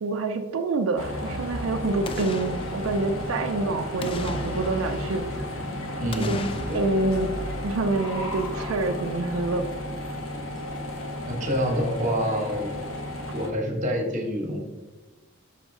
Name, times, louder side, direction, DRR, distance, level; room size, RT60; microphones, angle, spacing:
voice 1, 0.0-5.2 6.2-6.4 6.7-7.3 7.6-9.7, right 3 dB, 80° right, 5 dB, 0.4 m, -27 dB
sound 1, 1.0-13.5, left 1 dB, 90° left, 1.1 m, -33 dB
Boom, 2.0-3.6 4.0-5.6 6.1-8.4 8.7-8.8, left 3 dB, 25° left, 0.3 m, -38 dB
voice 2, 6.0-6.9 11.3-12.7 13.3-14.6, equal, 40° right, 3 dB, 1.0 m, -27 dB
5.8 x 5.1 x 3.6 m, 1.2 s
head